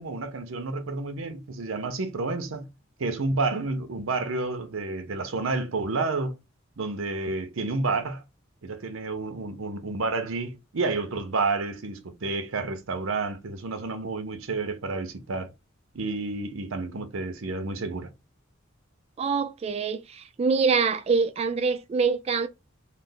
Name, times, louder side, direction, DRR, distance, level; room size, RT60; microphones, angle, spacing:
voice 1, 0.0-2.7 3.0-6.4 6.8-8.2 8.6-15.5 15.9-18.1, right 3 dB, 75° right, 0.7 m, -30 dB
voice 2, 19.2-22.5, right 5 dB, 30° right, 0.3 m, -25 dB
3.3 x 2.1 x 3.8 m
head